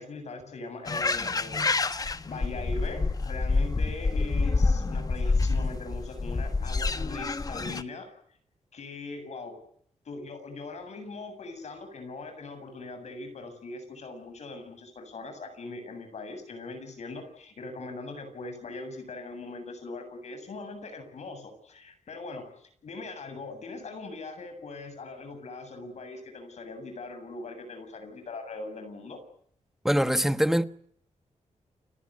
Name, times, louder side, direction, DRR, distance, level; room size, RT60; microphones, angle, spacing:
voice 1, 0.0-1.6 2.2-8.1 8.7-9.6 10.0-29.2, left 3 dB, 65° left, 7.6 m, -41 dB
sound 1, 0.9-7.8, left 3 dB, 30° left, 1.3 m, -27 dB
voice 2, 29.8-30.7, equal, 5° right, 1.1 m, -23 dB
30.0 x 18.5 x 9.6 m
wide cardioid pair, 130°, 12 cm